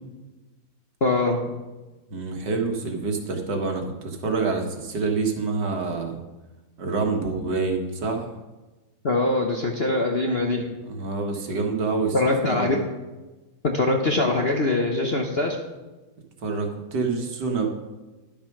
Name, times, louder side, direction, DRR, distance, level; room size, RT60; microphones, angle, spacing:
voice 1, 1.0-1.4 9.0-10.7 12.1-12.8 13.6-15.6, left 2 dB, 45° left, 1 dB, 0.8 m, -23 dB
voice 2, 2.1-6.2 6.8-8.2 10.9-12.2 12.5-12.8 16.4-17.7, right 4 dB, 60° right, 3 dB, 1.9 m, -27 dB
11.5 x 7.2 x 5.9 m, 1.2 s
omnidirectional pair, 2.1 m